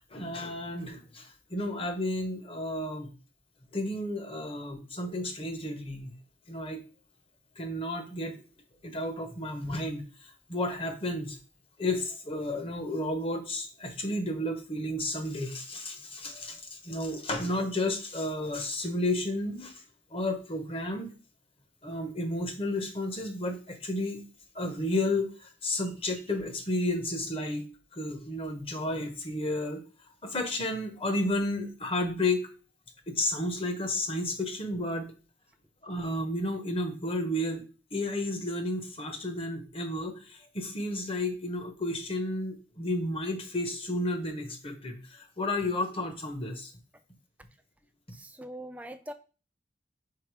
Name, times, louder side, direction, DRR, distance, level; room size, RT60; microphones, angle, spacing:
voice 1, 0.0-3.1 3.7-6.1 6.5-6.8 7.6-8.4 8.8-11.4 11.8-19.8 20.1-21.1 21.8-24.2 24.5-29.8 30.2-32.5 33.1-35.1 35.8-37.6 37.9-46.7, left 1 dB, 30° left, 6 dB, 1.0 m, -32 dB
voice 2, 48.1-49.1, right 1 dB, 10° right, 8 dB, 0.4 m, -42 dB
4.8 x 4.4 x 4.7 m, 0.35 s
head